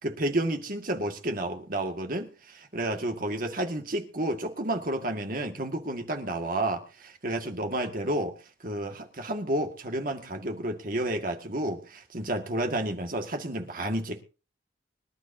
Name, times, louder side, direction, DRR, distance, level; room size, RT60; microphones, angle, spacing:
voice 1, 0.0-8.3 8.6-14.2, right 1 dB, 45° right, 2.0 m, -31 dB
24.5 x 12.0 x 2.8 m
head